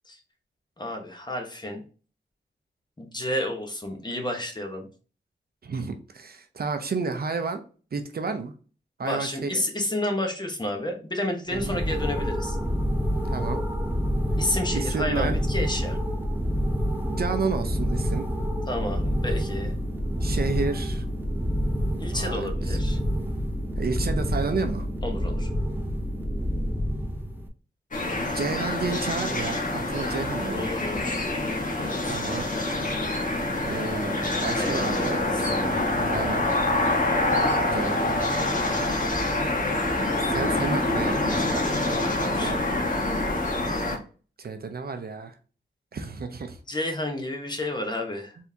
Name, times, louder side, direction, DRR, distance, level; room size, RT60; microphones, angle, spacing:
voice 1, 0.8-1.8 3.0-4.8 9.0-12.6 14.4-16.0 18.7-19.8 22.0-23.0 25.0-25.5 30.5-31.2 31.8-32.2 34.5-35.4 36.8-37.3 41.9-42.6 46.7-48.4, left 1 dB, 25° left, 3 dB, 1.0 m, -31 dB
voice 2, 5.6-7.6 7.9-8.5 9.0-9.6 11.5-11.8 13.3-13.6 14.7-15.4 17.1-18.3 20.2-21.0 22.1-22.8 23.8-24.9 28.3-30.7 32.1-32.5 33.6-35.2 36.1-36.5 37.7-38.3 40.3-42.0 42.3-42.6 44.4-45.4 45.9-46.6, right 4 dB, 55° right, 7 dB, 0.6 m, -31 dB
sound 1, 11.5-27.5, equal, 10° right, 0.8 m, -27 dB
sound 2, 27.9-44.0, left 2 dB, 45° left, 1.2 m, -26 dB
4.3 x 3.6 x 2.7 m, 0.38 s
wide cardioid pair, 90°, 19 cm